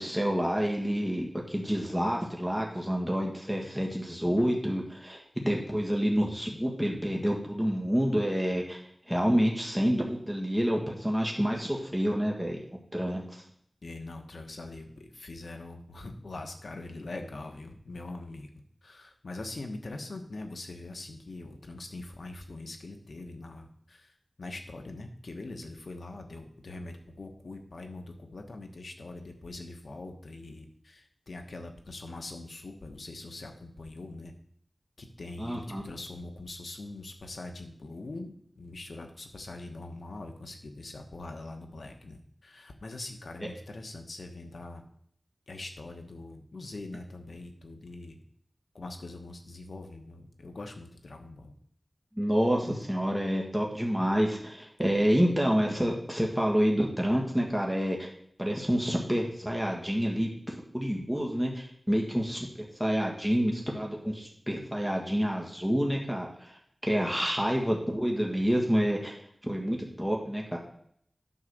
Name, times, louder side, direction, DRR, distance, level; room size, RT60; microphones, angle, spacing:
voice 1, 0.0-8.8 9.1-12.6 12.9-13.4 35.4-35.8 52.2-58.1 58.4-62.5 62.8-66.5 66.8-69.2 69.4-70.6, equal, ahead, -1 dB, 1.6 m, -28 dB
voice 2, 13.8-18.5 18.8-24.1 24.4-34.3 35.0-44.8 45.5-48.2 48.7-51.5, left 2 dB, 85° left, 4 dB, 1.1 m, -43 dB
9.6 x 3.9 x 6.5 m, 0.66 s
wide cardioid pair, 60°, 0 cm